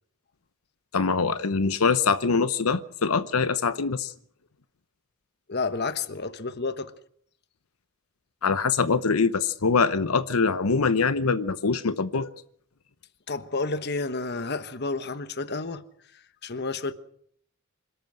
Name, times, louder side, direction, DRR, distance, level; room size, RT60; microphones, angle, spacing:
voice 1, 0.9-4.1 8.4-12.4, left 5 dB, 90° left, 0.8 m, -24 dB
voice 2, 5.5-6.9 13.3-15.8 16.4-16.9, left 3 dB, 50° left, 1.2 m, -30 dB
26.5 x 13.0 x 7.8 m
head